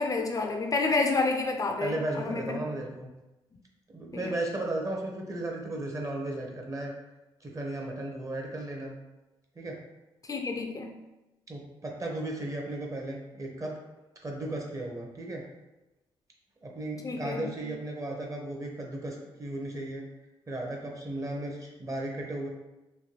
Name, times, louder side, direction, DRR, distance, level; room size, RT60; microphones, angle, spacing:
voice 1, 0.0-2.6 4.1-4.3 10.3-10.9 17.0-17.5, left 3 dB, 35° left, 3 dB, 0.4 m, -29 dB
voice 2, 1.8-3.1 3.9-6.9 7.4-8.9 9.6-9.7 11.5-13.7 14.2-15.4 16.6-20.0 20.5-22.5, right 1 dB, 30° right, 0 dB, 0.8 m, -35 dB
3.2 x 2.2 x 2.9 m, 1.0 s
cardioid pair, 75°, 10 cm